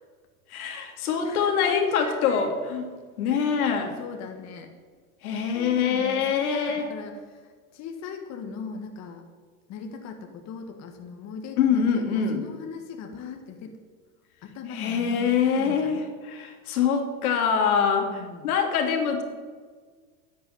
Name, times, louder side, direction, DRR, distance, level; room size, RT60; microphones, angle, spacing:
voice 1, 0.5-2.9 3.2-4.0 5.2-6.9 11.6-12.4 14.7-19.2, left 6 dB, 80° left, 4 dB, 2.8 m, -24 dB
voice 2, 1.2-2.5 4.0-4.7 5.5-9.3 9.7-13.8 14.4-16.1 18.1-18.5, left 6 dB, 40° left, 4 dB, 1.8 m, -39 dB
11.0 x 8.7 x 9.9 m, 1.5 s
supercardioid pair, 120°, 44 cm